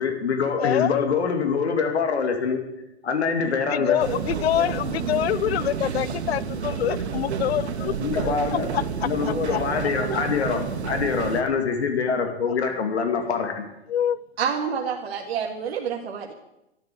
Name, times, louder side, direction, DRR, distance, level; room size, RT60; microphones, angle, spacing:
voice 1, 0.0-2.6 3.0-4.0 7.8-8.7 9.0-13.6, left 5 dB, 85° left, 4 dB, 2.6 m, -25 dB
voice 2, 0.6-1.1 3.7-7.9 8.7-8.8 9.5-9.6 13.9-14.2, left 11 dB, 70° left, 20 dB, 0.7 m, -25 dB
sound 1, 4.0-11.4, right 6 dB, 85° right, 1.9 m, -30 dB
voice 3, 14.4-16.3, right 7 dB, 65° right, 1 dB, 2.1 m, -28 dB
12.0 x 12.0 x 7.8 m, 0.90 s
hypercardioid pair, 135°, 32 cm